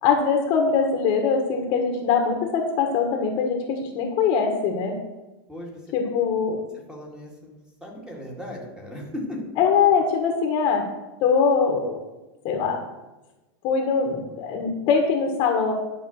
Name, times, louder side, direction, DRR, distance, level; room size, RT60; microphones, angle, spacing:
voice 1, 0.0-4.9 5.9-6.6 9.6-10.8 11.2-12.0 12.4-12.8 13.6-15.7, left 6 dB, 40° left, 2 dB, 1.4 m, -22 dB
voice 2, 5.5-5.8 6.9-9.4, left 1 dB, 5° right, -1 dB, 2.0 m, -37 dB
11.0 x 5.1 x 6.4 m, 1.1 s
supercardioid pair, 160°, 13 cm